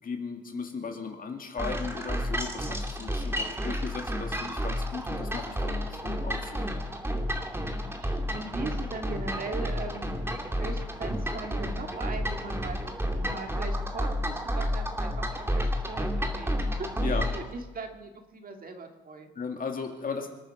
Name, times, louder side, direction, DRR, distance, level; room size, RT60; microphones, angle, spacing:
voice 1, 0.0-6.9 17.0-17.3 19.4-20.3, left 5 dB, 45° left, 4 dB, 2.3 m, -36 dB
sound 1, 1.6-17.5, equal, 10° right, 2.3 m, -31 dB
voice 2, 7.6-19.3, right 3 dB, 45° right, 5 dB, 2.1 m, -40 dB
26.0 x 9.2 x 5.9 m, 1.1 s
cardioid pair, 90°, 20 cm